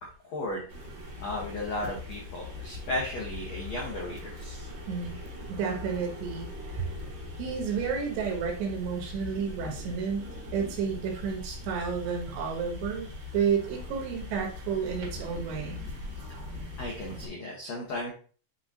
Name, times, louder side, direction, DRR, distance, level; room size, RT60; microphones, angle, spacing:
voice 1, 0.2-0.7 1.2-4.7 16.8-18.1, left 1 dB, 85° left, -3 dB, 1.5 m, -35 dB
sound 1, 0.7-17.3, left 2 dB, 45° right, 1.6 m, -41 dB
voice 2, 4.9-5.2 5.5-6.9 7.4-15.8, right 6 dB, 75° right, 2 dB, 3.3 m, -31 dB
9.4 x 3.8 x 2.8 m, 0.40 s
omnidirectional pair, 5.2 m